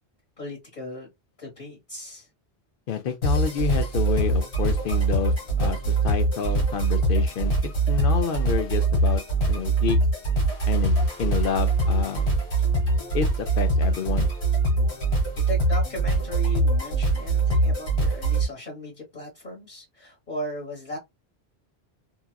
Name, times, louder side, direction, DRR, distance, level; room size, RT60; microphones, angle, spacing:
voice 1, 0.4-1.1 1.4-2.3 15.1-21.0, left 1 dB, 45° left, 1.5 m, -37 dB
voice 2, 2.9-7.6 7.9-10.0 10.7-12.4 13.1-14.3, left 7 dB, 60° left, 0.7 m, -29 dB
sound 1, 3.2-18.5, right 2 dB, 90° left, 1.6 m, -23 dB
2.9 x 2.4 x 2.2 m
omnidirectional pair, 1.1 m